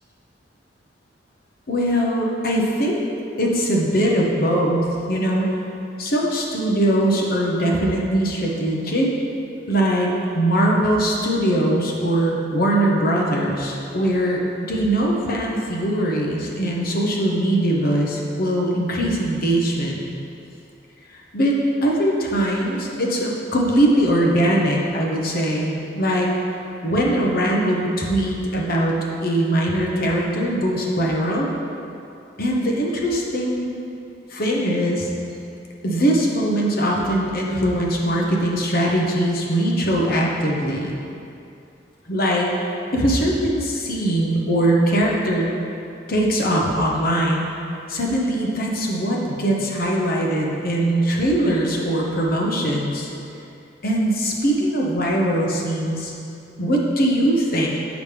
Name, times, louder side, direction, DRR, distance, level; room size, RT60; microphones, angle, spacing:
voice 1, 1.7-3.0 3.4-5.6 6.0-9.1 9.7-10.1 10.3-14.4 14.7-20.0 21.1-21.5 21.8-26.3 26.8-28.9 29.2-31.5 32.4-33.7 34.3-35.1 35.8-40.9 42.1-45.5 46.1-47.5 47.9-53.1 53.8-56.1 56.6-57.7, right 1 dB, 55° left, -2 dB, 0.9 m, -21 dB
7.0 x 6.1 x 3.3 m, 2.7 s
head